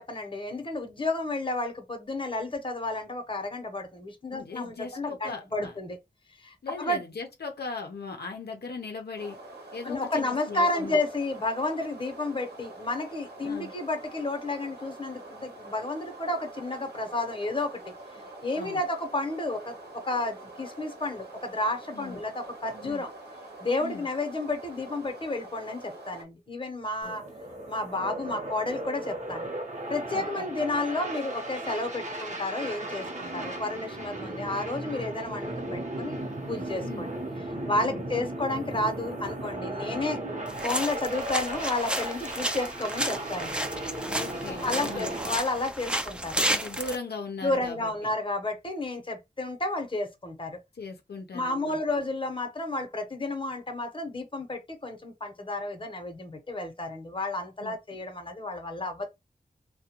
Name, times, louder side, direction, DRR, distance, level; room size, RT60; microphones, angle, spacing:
voice 1, 0.0-6.0 6.4-7.0 9.8-17.8 18.4-23.1 23.6-27.3 27.6-29.5 29.9-37.1 37.6-40.2 40.6-43.5 44.5-46.4 47.4-50.6 51.3-59.0, left 2 dB, 30° left, 0.8 m, -31 dB
voice 2, 4.3-5.7 6.6-9.4 9.7-11.0 13.4-13.7 18.5-18.8 21.9-22.2 22.8-23.0 23.8-24.0 27.0-27.1 30.1-30.5 36.8-37.1 37.8-38.0 44.1-45.1 46.4-48.1 50.7-51.8 57.6-57.7, left 4 dB, 90° left, 0.5 m, -39 dB
sound 1, 9.2-26.2, right 2 dB, 90° right, 0.9 m, -45 dB
sound 2, 27.0-45.4, right 1 dB, 45° right, 0.7 m, -36 dB
sound 3, 40.5-47.0, right 1 dB, 5° right, 0.4 m, -32 dB
2.3 x 2.1 x 2.8 m
wide cardioid pair, 60°, 16 cm